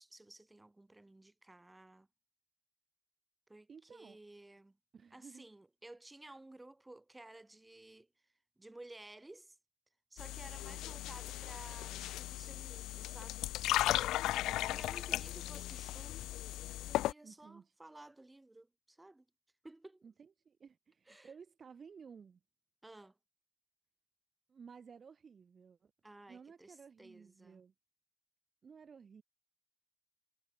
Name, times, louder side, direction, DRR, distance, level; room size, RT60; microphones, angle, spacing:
voice 1, 0.0-2.1 3.5-4.8 5.1-8.1 8.6-9.6 10.1-13.5 13.9-14.1 14.7-16.3 16.8-19.2 19.6-20.0 21.1-21.3 22.8-23.2 26.0-27.6, right 2 dB, 15° right, 5.1 m, -55 dB
voice 2, 3.7-4.2 4.9-5.5 10.7-11.0 14.4-14.9 17.2-17.7 20.0-22.4 24.5-25.9 26.3-27.7 28.6-29.2, right 6 dB, 45° right, 1.4 m, -56 dB
sound 1, 10.2-17.1, left 15 dB, 90° left, 0.3 m, -36 dB
cardioid pair, 90°, 0 cm